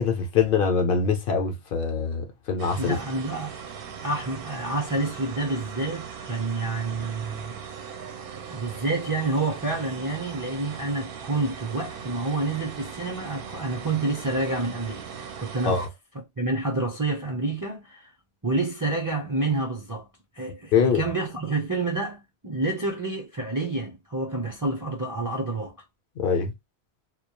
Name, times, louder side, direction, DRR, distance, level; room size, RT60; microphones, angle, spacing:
voice 1, 0.0-3.0 15.6-15.9 20.7-21.0 26.2-26.5, left 6 dB, 65° left, 0.7 m, -23 dB
sound 1, 2.6-15.9, right 7 dB, 65° right, 0.7 m, -39 dB
voice 2, 2.8-3.6 4.0-7.6 8.5-15.1 15.4-15.8 16.4-18.1 18.4-20.1 20.4-25.7, right 2 dB, 25° right, 0.5 m, -28 dB
2.3 x 2.1 x 2.9 m
omnidirectional pair, 1.1 m